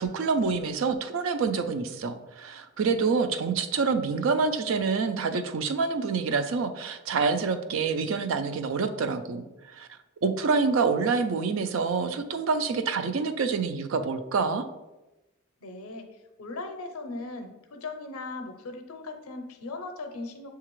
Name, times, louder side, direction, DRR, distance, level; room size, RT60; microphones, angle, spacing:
voice 1, 0.0-9.9 10.2-14.7, right 4 dB, 65° right, 9 dB, 0.4 m, -27 dB
voice 2, 15.6-20.5, left 3 dB, 85° left, 6 dB, 0.5 m, -38 dB
6.5 x 2.3 x 3.0 m, 1.0 s
head